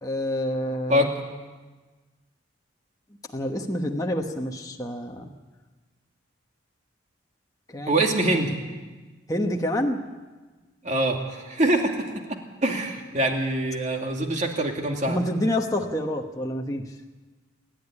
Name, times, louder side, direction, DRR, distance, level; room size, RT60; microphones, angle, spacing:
voice 1, 0.0-1.1 3.3-5.3 7.7-8.0 9.3-10.0 15.1-16.9, left 1 dB, 15° left, 2 dB, 1.2 m, -27 dB
voice 2, 7.9-8.5 10.8-11.9 12.6-15.2, right 1 dB, 35° right, 2 dB, 2.5 m, -24 dB
27.5 x 12.0 x 9.9 m, 1.3 s
head